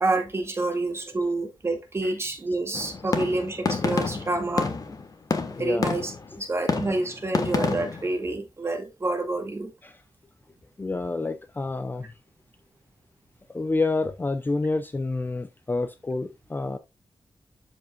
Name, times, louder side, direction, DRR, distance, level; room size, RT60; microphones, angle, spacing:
voice 1, 0.0-4.7 5.6-9.7, right 2 dB, 30° right, 2.1 m, -28 dB
sound 1, 2.7-6.3 6.7-8.1, left 4 dB, 45° left, 1.4 m, -28 dB
voice 2, 4.3-5.0 5.6-5.9 6.3-6.4 9.8-10.0 10.8-12.1 13.5-16.8, left 3 dB, 20° left, 0.6 m, -29 dB
12.5 x 5.4 x 2.4 m
wide cardioid pair, 165°, 9 cm